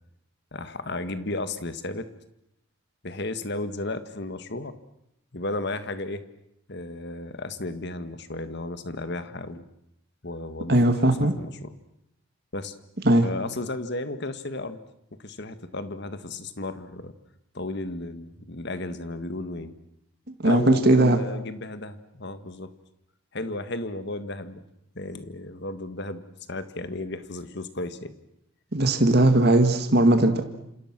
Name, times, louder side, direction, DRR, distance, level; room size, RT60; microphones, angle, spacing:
voice 1, 0.5-2.1 3.0-4.8 5.3-6.3 6.7-9.6 10.2-10.8 11.0-11.7 12.5-12.7 13.2-14.8 15.2-17.1 17.5-19.7 20.4-22.7 23.3-24.6 24.9-28.1, left 2 dB, 50° left, 11 dB, 1.7 m, -34 dB
voice 2, 10.7-11.3 13.1-13.3 20.4-21.2 28.7-30.4, right 1 dB, 50° right, 6 dB, 1.9 m, -19 dB
27.5 x 27.0 x 6.1 m, 0.79 s
head